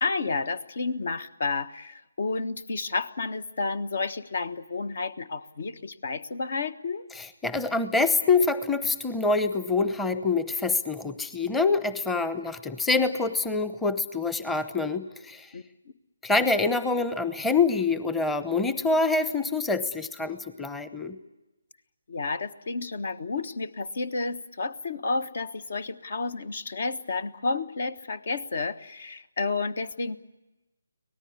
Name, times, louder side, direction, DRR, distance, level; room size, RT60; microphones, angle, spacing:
voice 1, 0.0-7.1 15.5-15.6 22.1-30.2, left 3 dB, 55° left, 14 dB, 1.3 m, -31 dB
voice 2, 7.2-15.5 16.2-21.2, left 3 dB, 5° left, 12 dB, 1.0 m, -26 dB
24.5 x 18.5 x 9.7 m, 1.0 s
figure-of-eight pair, 150°, 0 cm